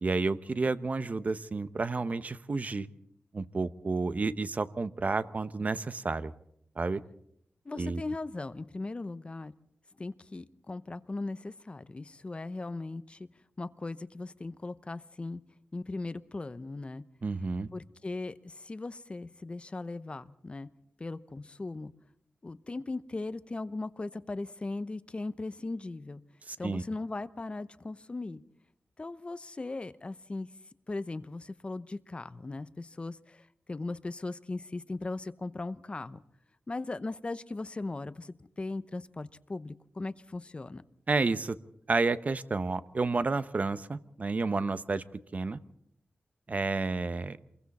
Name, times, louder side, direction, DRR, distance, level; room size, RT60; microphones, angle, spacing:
voice 1, 0.0-2.9 3.3-6.3 6.8-7.0 7.7-8.0 17.2-17.7 26.5-26.8 41.1-41.6 41.9-45.0 45.3-45.6 46.5-47.4, right 3 dB, 40° right, 13 dB, 0.9 m, -30 dB
voice 2, 7.6-9.5 10.0-13.3 13.6-15.4 15.7-17.0 17.7-20.7 21.0-21.9 22.4-26.2 26.6-28.4 29.0-30.5 30.9-33.4 33.7-36.2 36.7-40.8, left 2 dB, 30° left, 13 dB, 0.8 m, -38 dB
27.5 x 22.0 x 4.2 m, 0.72 s
wide cardioid pair, 115°, 4 cm